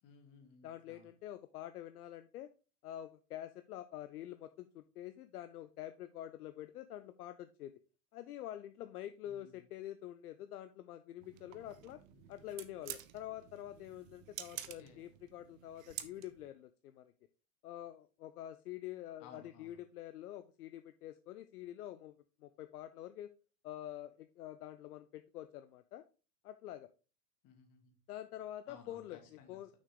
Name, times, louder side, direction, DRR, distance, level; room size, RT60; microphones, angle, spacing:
voice 1, 0.0-1.1 9.3-9.6 12.1-12.2 14.5-15.1 19.2-19.8 27.4-27.9 28.7-29.6, left 6 dB, 40° left, 4 dB, 2.2 m, -59 dB
voice 2, 0.6-2.5 2.8-7.7 8.1-12.0 12.3-17.1 17.6-23.3 23.6-26.0 26.4-26.9 28.1-29.7, left 12 dB, 70° left, 10 dB, 0.7 m, -47 dB
sound 1, 11.2-16.5, right 12 dB, 55° right, 0.9 m, -50 dB
6.2 x 6.1 x 3.7 m, 0.34 s
hypercardioid pair, 95°, 48 cm